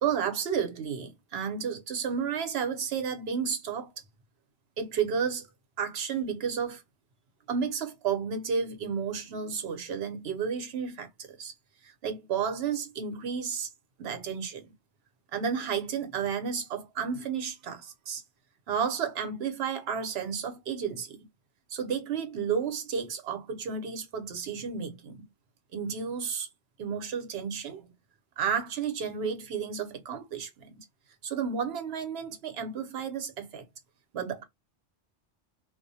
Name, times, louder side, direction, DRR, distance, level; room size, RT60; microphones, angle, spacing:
voice 1, 0.0-3.9 4.8-5.5 5.8-6.8 7.5-11.5 11.8-13.7 14.0-14.7 15.3-18.2 18.7-21.2 21.7-25.2 25.7-26.5 26.8-27.9 28.4-30.8 31.2-33.6 34.1-34.4, right 6 dB, 65° right, 0.9 m, -32 dB
2.4 x 2.1 x 2.6 m
omnidirectional pair, 1.2 m